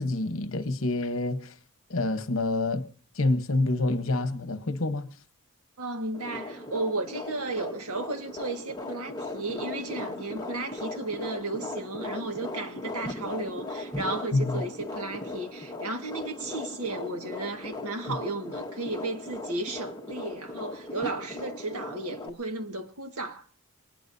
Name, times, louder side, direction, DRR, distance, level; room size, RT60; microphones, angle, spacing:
voice 1, 0.0-1.5 1.9-2.9 3.2-5.1 14.3-14.6, left 2 dB, 65° left, 1.1 m, -27 dB
voice 2, 5.8-23.4, right 2 dB, 90° right, 1.7 m, -34 dB
fetal doppler stethoscope, 6.1-22.3, left 2 dB, 20° left, 1.5 m, -38 dB
22.5 x 20.0 x 2.7 m
head